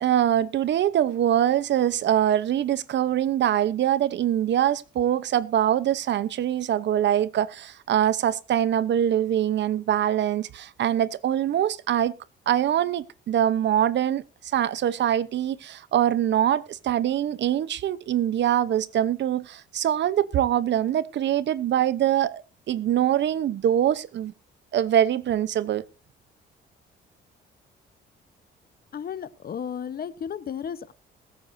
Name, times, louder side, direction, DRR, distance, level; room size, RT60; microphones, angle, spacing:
voice 1, 0.0-12.1 12.5-22.4 22.7-24.3 24.7-25.8, right 11 dB, 65° right, 0.8 m, -23 dB
voice 2, 28.9-30.9, left 8 dB, 50° left, 1.0 m, -33 dB
21.0 x 9.1 x 2.7 m
cardioid pair, 90°, 20 cm